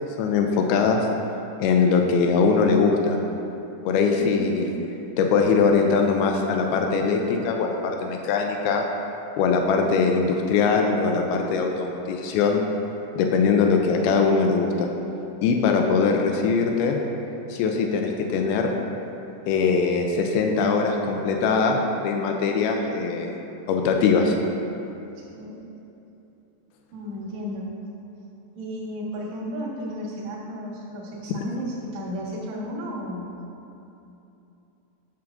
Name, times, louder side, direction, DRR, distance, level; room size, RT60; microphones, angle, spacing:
voice 1, 0.2-1.1 1.6-3.2 3.9-4.7 5.2-8.9 9.4-12.6 13.2-14.9 15.4-17.0 17.5-18.7 19.5-23.4 23.7-24.4, left 5 dB, 90° left, 2 dB, 2.1 m, -21 dB
voice 2, 4.1-4.7 25.2-25.6 26.9-27.7 28.6-33.3, equal, 55° right, -9 dB, 2.3 m, -33 dB
10.5 x 7.1 x 2.5 m, 2.8 s
omnidirectional pair, 4.9 m